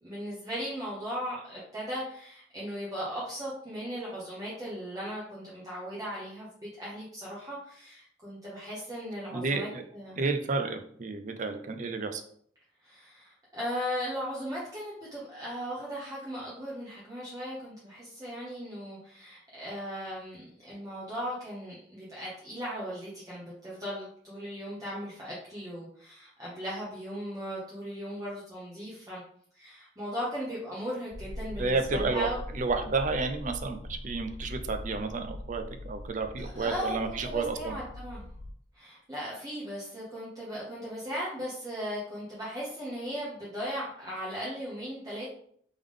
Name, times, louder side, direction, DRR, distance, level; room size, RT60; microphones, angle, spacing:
voice 1, 0.0-6.5 6.8-9.7 9.9-10.2 12.8-29.2 29.5-32.4 36.4-38.3 38.7-45.3, equal, 20° right, -8 dB, 1.1 m, -37 dB
voice 2, 9.3-9.8 10.2-12.2 31.6-32.3 32.5-37.8, right 3 dB, 45° right, 7 dB, 0.5 m, -31 dB
sound 1, 31.1-38.5, left 1 dB, 75° left, 0.5 m, -41 dB
3.5 x 3.4 x 3.7 m, 0.62 s
head